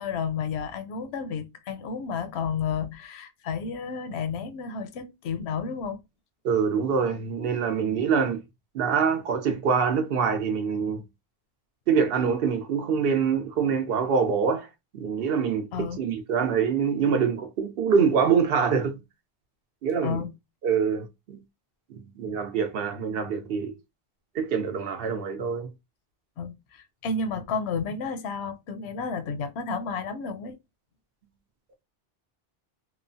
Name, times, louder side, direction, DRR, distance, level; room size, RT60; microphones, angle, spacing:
voice 1, 0.0-6.0 15.7-16.0 20.0-20.3 26.4-30.6, left 5 dB, 90° left, 0.8 m, -31 dB
voice 2, 6.4-8.4 8.7-11.0 11.9-14.7 14.9-18.9 19.8-20.2 20.6-21.4 21.9-23.8 24.3-25.7, right 6 dB, 70° right, 0.8 m, -25 dB
3.0 x 2.0 x 2.5 m
omnidirectional pair, 1.0 m